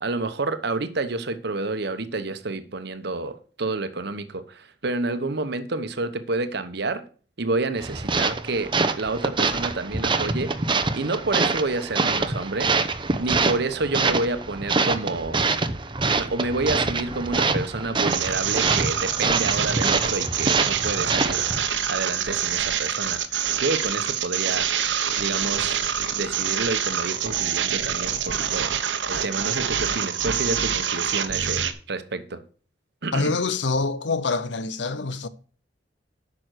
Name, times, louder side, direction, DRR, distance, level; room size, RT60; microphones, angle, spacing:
voice 1, 0.0-7.0 7.4-8.7 9.0-10.5 10.9-12.7 13.2-15.4 16.1-21.5 21.9-23.2 23.6-24.7 25.2-25.8 26.1-28.7 29.1-32.4 33.0-33.3, right 3 dB, 65° right, 1.1 m, -29 dB
sound 1, 7.8-21.7, right 3 dB, 25° right, 0.8 m, -25 dB
sound 2, 18.1-31.7, right 8 dB, 90° right, 1.1 m, -26 dB
voice 2, 33.1-35.3, left 3 dB, 75° left, 0.8 m, -25 dB
9.0 x 6.1 x 6.4 m
head